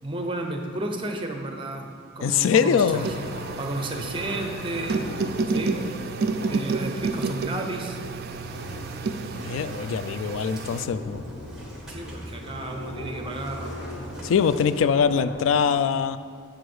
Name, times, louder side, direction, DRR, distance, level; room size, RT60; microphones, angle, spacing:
voice 1, 0.0-3.1 3.6-5.0 5.5-5.9 6.5-8.0 11.9-13.8 15.2-15.3, right 2 dB, 25° right, 3 dB, 0.7 m, -32 dB
voice 2, 2.2-3.1 9.3-11.2 14.2-16.2, left 6 dB, 85° left, 14 dB, 0.3 m, -23 dB
sound 1, 2.9-15.5, left 1 dB, 70° left, 1.0 m, -40 dB
sound 2, 2.9-10.9, right 4 dB, 50° right, 0.3 m, -30 dB
Engine starting, 7.9-14.8, equal, 5° right, 1.3 m, -42 dB
7.8 x 4.8 x 6.2 m, 2.2 s
head